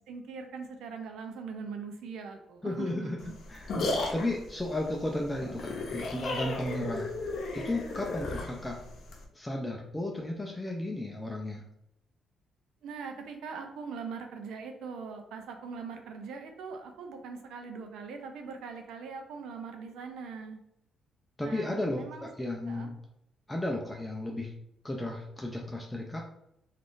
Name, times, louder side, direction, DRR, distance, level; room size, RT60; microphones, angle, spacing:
voice 1, 0.0-3.3 4.0-4.1 12.8-20.6 21.4-22.9, right 5 dB, 85° right, 5 dB, 0.4 m, -41 dB
voice 2, 2.6-3.2 3.5-7.1 7.5-8.8 9.3-11.6 21.4-22.9 23.5-24.5 24.8-26.2, left 1 dB, 15° left, 0 dB, 0.4 m, -34 dB
sound 1, 3.2-9.2, left 2 dB, 65° left, 0.6 m, -34 dB
3.4 x 2.4 x 2.5 m, 0.78 s
cardioid pair, 90°, 0 cm